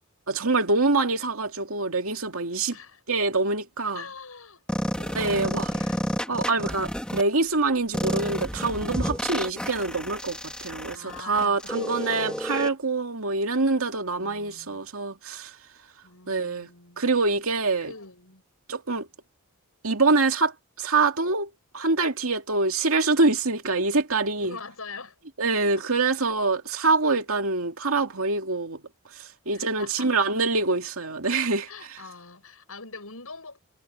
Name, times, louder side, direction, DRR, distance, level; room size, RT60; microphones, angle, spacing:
voice 1, 0.3-2.8 3.1-4.0 5.1-5.7 6.3-15.5 16.3-16.7 17.0-17.9 18.7-19.1 19.8-24.6 25.4-28.8 29.1-31.7, right 3 dB, 70° right, 2.4 m, -25 dB
voice 2, 3.9-4.6 5.0-6.2 10.9-12.4 14.1-14.8 16.0-17.0 17.8-18.4 24.4-25.2 29.5-30.1 31.7-33.6, left 4 dB, 70° left, 6.8 m, -43 dB
sound 1, 4.7-7.2 7.9-12.7, equal, 5° left, 2.8 m, -30 dB
head